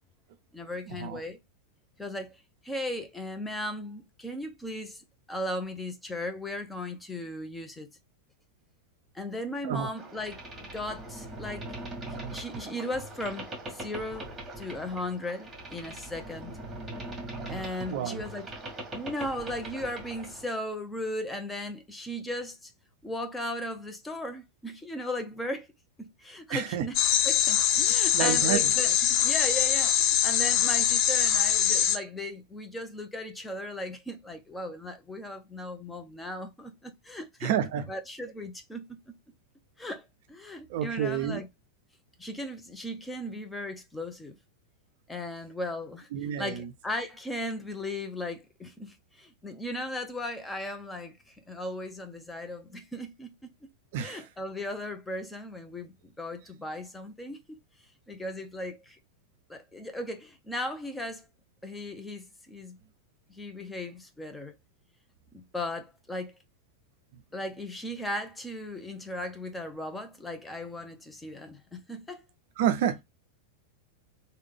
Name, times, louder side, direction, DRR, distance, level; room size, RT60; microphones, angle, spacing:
voice 1, 0.5-1.4 2.0-2.4 2.6-5.0 5.3-7.9 9.1-11.7 12.1-16.6 17.5-18.5 18.9-22.7 23.0-25.7 26.0-39.2 39.8-41.5 42.2-44.4 45.1-53.7 54.0-57.6 58.1-59.0 59.5-61.3 61.6-62.8 63.3-64.5 65.3-66.3 67.3-72.2, left 1 dB, 10° left, 0.7 m, -37 dB
Boat Water vehicle, 10.0-20.5, right 2 dB, 15° right, 1.4 m, -41 dB
voice 2, 17.9-18.2 26.5-26.9 28.1-28.7 37.4-37.9 40.7-41.4 46.1-46.7 53.9-54.2 72.6-73.0, right 9 dB, 50° right, 0.4 m, -29 dB
sound 1, 26.9-32.0, left 10 dB, 40° left, 0.4 m, -23 dB
3.2 x 2.2 x 3.5 m
figure-of-eight pair, 90°, 0 cm